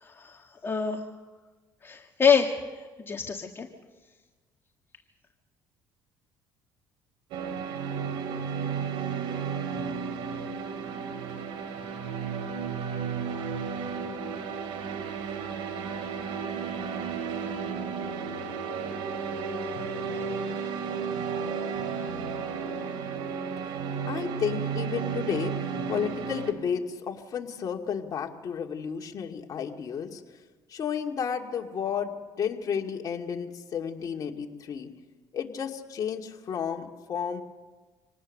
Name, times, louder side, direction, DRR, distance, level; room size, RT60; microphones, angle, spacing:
voice 1, 0.0-1.0 1.8-2.5 3.0-3.7, left 6 dB, 25° left, 2 dB, 1.8 m, -26 dB
sound 1, 7.3-26.5, right 6 dB, 80° right, 2.5 m, -33 dB
voice 2, 24.1-30.2 30.7-34.9 35.3-37.4, left 7 dB, 45° left, 2 dB, 2.3 m, -32 dB
26.0 x 19.0 x 6.6 m, 1.3 s
cardioid pair, 100°, 9 cm